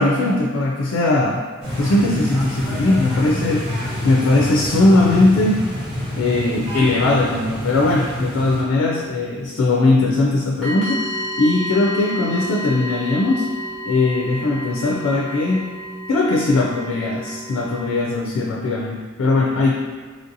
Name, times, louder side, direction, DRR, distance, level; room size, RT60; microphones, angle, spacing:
voice 1, 0.0-1.4 1.8-3.7 4.0-5.6 6.2-13.5 13.9-15.8 16.1-19.7, left 2 dB, 80° left, -2 dB, 0.3 m, -19 dB
sound 1, 1.6-8.6, left 1 dB, 70° right, 1.2 m, -27 dB
sound 2, 10.6-18.0, equal, ahead, 1.0 m, -31 dB
3.1 x 2.6 x 2.5 m, 1.5 s
head